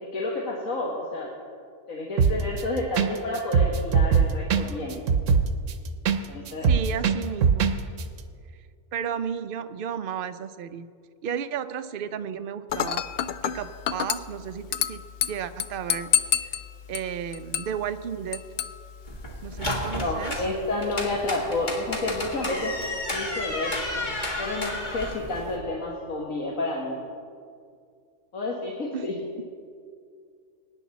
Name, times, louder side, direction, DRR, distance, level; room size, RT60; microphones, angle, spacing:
voice 1, 0.0-1.3 1.9-5.0 6.3-6.7 20.0-22.7 23.1-23.8 24.4-27.0 28.3-29.2, left 2 dB, 85° left, -2 dB, 1.9 m, -30 dB
sound 1, 2.2-2.6 3.0-3.1 3.4-6.2 6.5-7.7 8.0-8.1, right 6 dB, 70° right, 1.1 m, -20 dB
voice 2, 6.7-7.7 8.9-10.8 11.2-13.0 13.4-15.0 15.3-16.1 16.9-18.4 19.4-20.3 28.9-29.1, right 8 dB, 55° right, 11 dB, 0.7 m, -33 dB
Dishes pots and pans / Glass, 12.7-19.7, left 10 dB, 65° left, 0.6 m, -30 dB
sound 2, 19.1-25.6, left 1 dB, 35° left, 2.0 m, -32 dB
23.5 x 10.0 x 4.1 m, 2.2 s
omnidirectional pair, 1.4 m